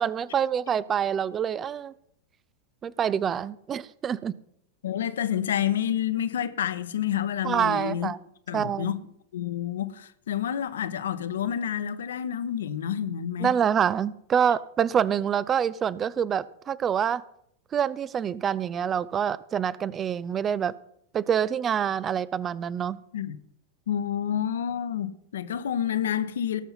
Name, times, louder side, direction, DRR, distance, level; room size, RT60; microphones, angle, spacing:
voice 1, 0.0-1.9 2.8-4.4 7.4-8.2 8.5-8.9 13.4-17.2 17.7-20.8 21.1-23.0, right 8 dB, 25° right, 0.5 m, -26 dB
voice 2, 4.8-8.1 8.5-9.0 9.3-13.5 23.1-23.4 23.9-26.6, left 9 dB, 65° left, 1.0 m, -29 dB
18.5 x 7.0 x 5.7 m
figure-of-eight pair, 90°, 0 cm